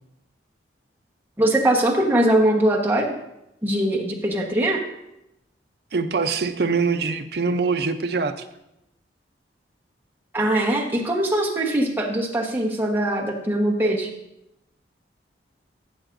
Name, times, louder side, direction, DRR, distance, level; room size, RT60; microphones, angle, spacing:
voice 1, 1.4-3.1 3.6-4.8 10.3-14.1, right 1 dB, 10° right, -2 dB, 1.1 m, -21 dB
voice 2, 5.9-8.5, right 4 dB, 60° right, 7 dB, 0.6 m, -23 dB
12.5 x 7.9 x 2.6 m, 0.86 s
head